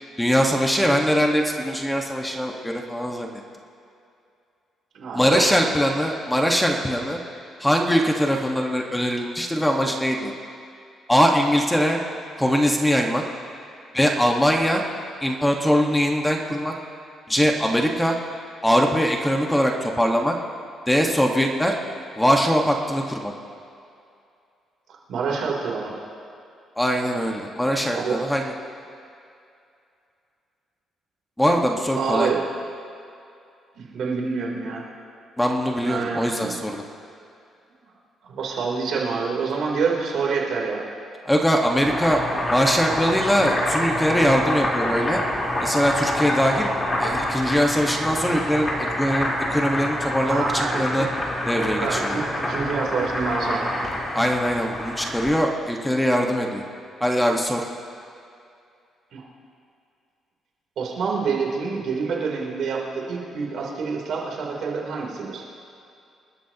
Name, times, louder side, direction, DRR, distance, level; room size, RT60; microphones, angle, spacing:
voice 1, 0.2-3.3 5.1-7.2 7.6-10.3 11.1-12.0 12.4-13.2 13.9-14.8 15.2-16.7 17.3-18.2 18.6-20.3 20.9-21.7 22.2-23.3 26.8-28.5 31.4-32.3 35.4-36.8 41.2-42.2 42.5-45.2 45.6-46.7 47.0-48.7 49.0-51.1 51.5-52.2 54.1-56.6 57.0-57.6, equal, 5° left, 1 dB, 1.5 m, -21 dB
voice 2, 4.9-5.4 24.9-25.9 27.9-28.3 31.9-32.4 33.8-34.8 35.8-36.6 38.3-40.8 50.3-51.1 51.7-53.8 59.1-59.3 60.8-65.4, right 5 dB, 70° right, -2 dB, 3.5 m, -27 dB
Boiling, 41.6-55.4, left 1 dB, 25° left, 3.8 m, -27 dB
26.5 x 12.5 x 3.0 m, 2.5 s
cardioid pair, 90°, 0 cm